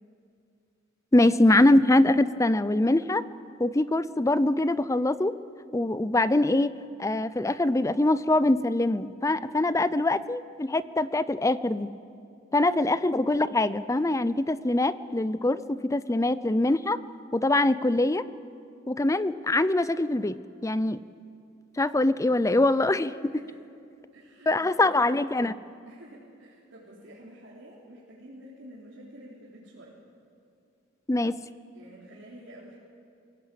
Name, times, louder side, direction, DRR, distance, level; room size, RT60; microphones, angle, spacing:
voice 1, 1.1-3.2 3.6-5.3 5.7-6.7 7.0-11.9 12.5-17.0 17.3-18.2 18.9-20.4 20.6-21.0 21.8-23.1 24.5-25.5 31.1-31.4, left 2 dB, 15° left, 15 dB, 0.5 m, -23 dB
voice 2, 23.2-23.6 24.1-24.9 25.9-30.0 31.7-32.8, right 1 dB, 65° right, -7 dB, 3.9 m, -49 dB
22.0 x 17.0 x 8.5 m, 2.5 s
head